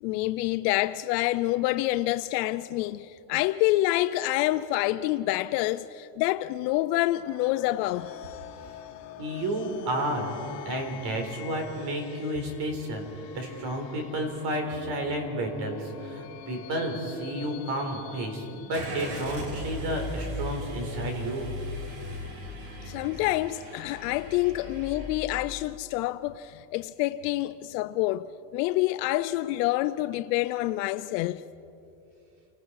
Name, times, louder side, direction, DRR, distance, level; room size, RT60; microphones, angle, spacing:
voice 1, 0.0-8.1 22.9-31.4, left 17 dB, 75° left, 0.6 m, -27 dB
sound 1, 7.1-19.6, left 10 dB, 55° left, 2.0 m, -45 dB
voice 2, 9.2-10.3 10.6-21.5, right 1 dB, 55° right, 4.4 m, -31 dB
Car / Engine starting, 18.7-25.1, left 1 dB, 80° right, 5.3 m, -37 dB
29.5 x 19.0 x 4.7 m
cardioid pair, 150°, 50 cm